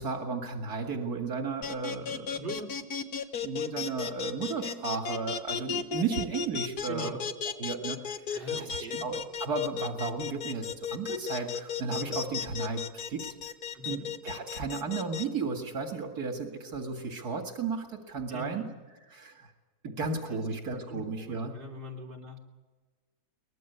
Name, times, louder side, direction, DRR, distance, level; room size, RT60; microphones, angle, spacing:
voice 1, 0.0-2.4 3.4-7.2 7.6-8.3 8.6-13.2 13.9-18.6 19.1-19.5 19.8-21.5, right 4 dB, 75° right, 3 dB, 2.6 m, -34 dB
sound 1, 1.6-15.2, left 7 dB, 75° left, 1.9 m, -34 dB
voice 2, 2.4-2.7 6.9-7.2 8.3-9.0 13.7-14.1 18.3-18.7 20.3-20.5 20.9-22.4, right 1 dB, 35° right, -1 dB, 3.6 m, -41 dB
23.5 x 20.0 x 8.2 m, 1.3 s
omnidirectional pair, 1.7 m